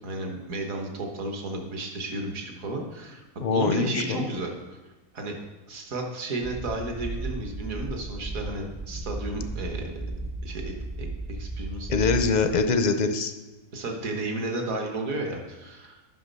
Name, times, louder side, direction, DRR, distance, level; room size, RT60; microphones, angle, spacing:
voice 1, 0.0-3.2 3.5-4.8 5.1-5.4 5.7-10.0 10.4-12.3 13.7-16.0, right 2 dB, 70° right, 2 dB, 1.8 m, -33 dB
voice 2, 3.4-4.3 11.9-13.3, left 4 dB, 50° left, 8 dB, 0.5 m, -23 dB
sound 1, 6.4-12.7, right 2 dB, 40° right, 0.4 m, -35 dB
10.5 x 6.1 x 5.4 m, 1.2 s
omnidirectional pair, 1.5 m